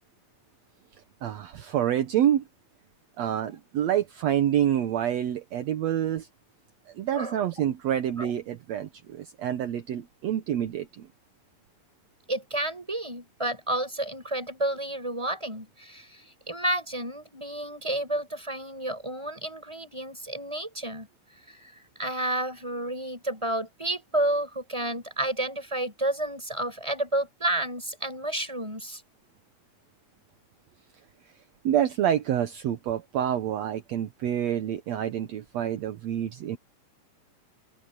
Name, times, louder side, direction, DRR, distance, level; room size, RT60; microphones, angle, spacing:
voice 1, 1.2-2.4 3.2-6.3 7.0-11.1 31.6-36.6, right 10 dB, 70° right, 2.1 m, -27 dB
voice 2, 12.3-21.1 21.5-21.7 22.0-29.0, right 1 dB, 10° right, 6.4 m, -31 dB
open air
omnidirectional pair, 3.4 m